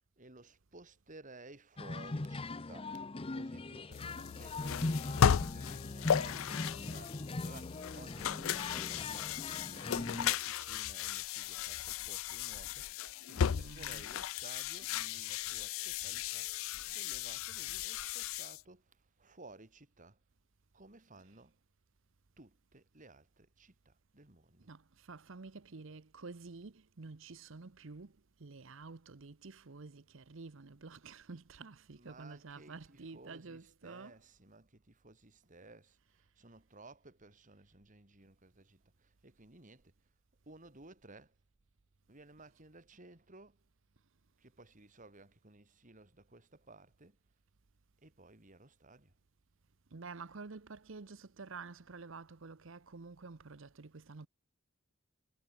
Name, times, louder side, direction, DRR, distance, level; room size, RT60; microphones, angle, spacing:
voice 1, 0.2-16.5 16.8-20.2 20.7-21.6 22.4-24.7 31.9-40.1 40.5-41.4 42.1-43.6 44.4-47.2 48.0-49.1, right 2 dB, 40° right, 2.8 m, -57 dB
sound 1, 1.8-10.3, left 2 dB, 25° left, 0.7 m, -40 dB
sound 2, 3.9-18.6, left 8 dB, 70° left, 0.4 m, -35 dB
voice 2, 13.5-14.1 24.6-34.2 49.9-54.3, right 4 dB, 65° right, 0.8 m, -50 dB
head